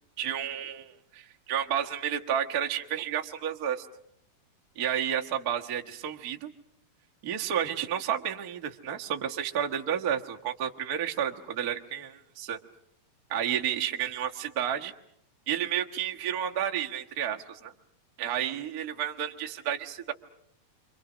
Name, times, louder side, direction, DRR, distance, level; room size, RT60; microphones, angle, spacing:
voice 1, 0.2-3.9 4.7-6.5 7.2-12.6 13.3-14.9 15.5-17.7 18.2-20.1, right 9 dB, 75° right, 2 dB, 0.8 m, -31 dB
29.0 x 26.0 x 6.2 m, 0.72 s
omnidirectional pair, 4.2 m